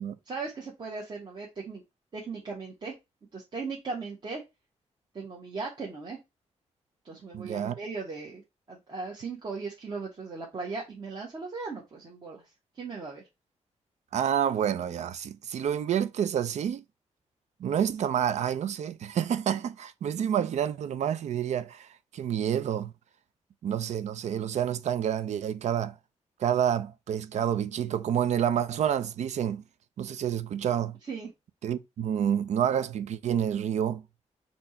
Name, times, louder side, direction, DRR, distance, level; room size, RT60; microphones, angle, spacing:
voice 1, 0.2-1.8 2.1-2.9 3.3-4.4 5.1-6.2 7.0-8.4 8.7-12.4 12.7-13.2 31.1-31.3, right 4 dB, 40° right, 1.2 m, -37 dB
voice 2, 7.3-7.7 14.1-16.8 17.6-22.9 23.6-25.9 26.4-29.6 30.0-31.0 31.6-34.1, right 9 dB, 70° right, 0.5 m, -28 dB
4.3 x 2.9 x 4.3 m
wide cardioid pair, 155°, 12 cm